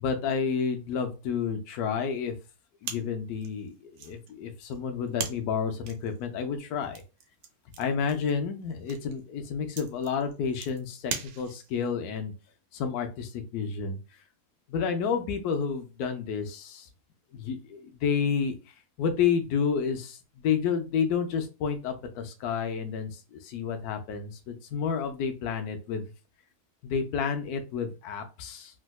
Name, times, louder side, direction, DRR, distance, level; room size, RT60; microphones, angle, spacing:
voice 1, 0.0-2.3 2.8-3.7 4.0-7.0 7.8-12.3 12.7-14.0 14.7-16.8 17.3-18.5 19.0-20.1 20.4-23.1 23.5-24.3 24.7-26.0 26.8-28.7, left 6 dB, 70° left, 6 dB, 1.0 m, -30 dB
sound 1, 2.8-11.9, right 7 dB, 70° right, 1.0 m, -42 dB
3.4 x 2.7 x 2.2 m, 0.31 s
omnidirectional pair, 1.8 m